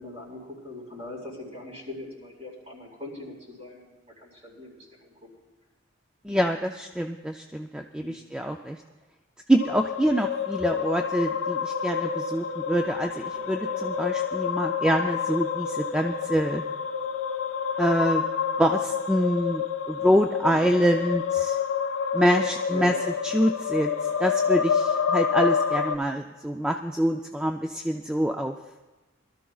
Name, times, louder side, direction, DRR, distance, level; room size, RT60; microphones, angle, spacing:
voice 1, 0.0-5.1 8.0-8.2 22.7-23.0, left 2 dB, 30° right, -4 dB, 4.5 m, -41 dB
voice 2, 6.2-8.8 9.5-16.6 17.8-18.2 18.6-21.6 22.1-22.9 23.2-23.9 24.2-28.5, equal, 5° right, 4 dB, 0.3 m, -25 dB
sound 1, 9.6-26.0, left 7 dB, 80° left, 0.6 m, -28 dB
23.0 x 13.5 x 2.3 m, 1.1 s
head